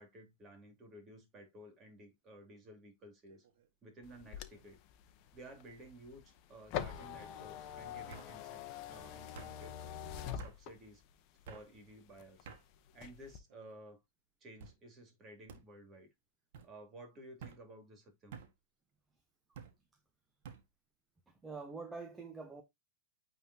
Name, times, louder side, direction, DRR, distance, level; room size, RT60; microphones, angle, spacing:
voice 1, 0.0-3.5 3.8-4.8 5.3-8.6 8.9-9.8 10.2-11.0 11.5-12.5 12.9-14.0 14.4-16.1 16.6-18.4, right 1 dB, 25° right, 3.1 m, -54 dB
sound 1, 3.3-3.7 4.1-4.6 5.7-5.8 6.7-7.0 8.1-8.3 9.3-9.5 10.4-10.6 11.4-11.7 12.4-12.6 13.4-13.8 14.6-14.8 15.5-15.6 16.5-16.7 17.4-17.6 18.3-18.5 19.5-19.7 20.4-20.6, right 6 dB, 60° right, 1.6 m, -51 dB
sound 2, 4.0-11.1 11.6-12.6 12.9-13.4, left 10 dB, 40° left, 0.9 m, -45 dB
voice 2, 21.4-22.6, right 4 dB, 10° right, 1.0 m, -45 dB
9.0 x 3.8 x 2.8 m
hypercardioid pair, 135°, 0 cm